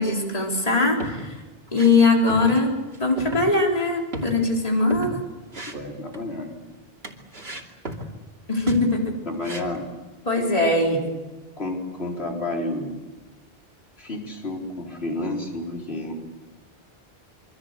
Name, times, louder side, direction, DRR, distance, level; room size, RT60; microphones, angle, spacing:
voice 1, 0.0-1.4 1.7-2.7 3.0-5.2 8.5-9.1 10.3-11.0, left 3 dB, 35° left, 0 dB, 4.2 m, -21 dB
sound 1, 0.8-1.3 1.7-2.0 2.3-2.7 2.9-3.5 3.7-3.8 4.1-5.2 5.5-6.3 7.0-8.2 8.5-8.9 9.4-9.9, right 1 dB, 75° right, 3.1 m, -35 dB
voice 2, 5.7-6.6 9.3-9.9 11.6-13.0 14.0-16.1, left 1 dB, 85° left, 0 dB, 4.5 m, -30 dB
26.5 x 24.5 x 8.3 m, 1.2 s
omnidirectional pair, 1.0 m